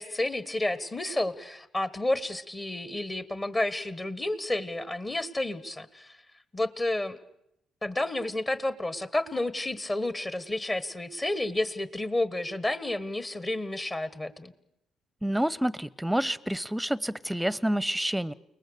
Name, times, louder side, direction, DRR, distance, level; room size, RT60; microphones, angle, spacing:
voice 1, 0.0-6.2 6.5-7.2 7.8-14.5, left 1 dB, 30° left, 15 dB, 1.5 m, -31 dB
voice 2, 15.2-18.3, right 1 dB, 5° right, 22 dB, 0.8 m, -28 dB
29.5 x 19.5 x 6.6 m, 0.80 s
hypercardioid pair, 45°, 0 cm